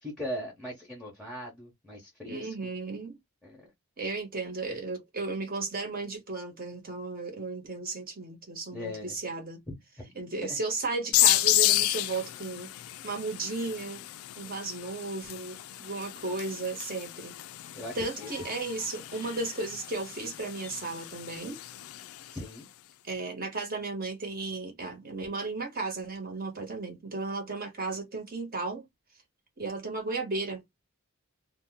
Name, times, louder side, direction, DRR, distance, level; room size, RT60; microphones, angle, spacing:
voice 1, 0.0-2.7 3.4-3.7 8.7-9.1 9.7-9.8 10.4-10.6 17.7-18.3 22.3-22.7, left 1 dB, ahead, 0.8 m, -39 dB
voice 2, 2.3-3.2 4.0-9.6 10.1-12.7 13.0-14.0 14.4-17.3 17.9-21.6 23.0-28.8 29.6-30.6, right 3 dB, 40° right, 1.1 m, -35 dB
sound 1, 11.1-22.5, left 16 dB, 70° left, 0.3 m, -31 dB
2.7 x 2.2 x 3.5 m
head